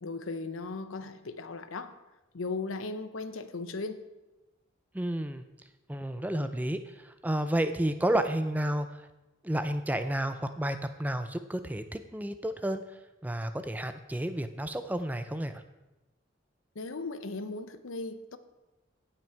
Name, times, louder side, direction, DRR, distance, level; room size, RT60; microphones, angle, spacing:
voice 1, 0.0-2.0 2.3-4.0 16.7-18.4, left 3 dB, 80° left, 11 dB, 0.8 m, -37 dB
voice 2, 4.9-5.4 5.9-9.1 9.4-12.8 13.2-15.6, right 1 dB, 10° right, 10 dB, 0.4 m, -31 dB
16.5 x 6.0 x 4.5 m, 1.1 s
head